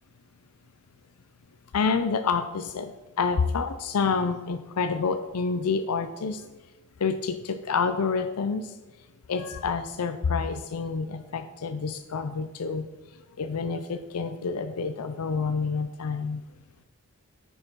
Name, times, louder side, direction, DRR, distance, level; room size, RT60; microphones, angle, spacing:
voice 1, 1.7-2.9 3.2-6.4 7.0-8.7 9.3-12.9 13.4-16.4, left 5 dB, 90° left, 8 dB, 0.5 m, -28 dB
9.8 x 5.5 x 4.6 m, 1.1 s
head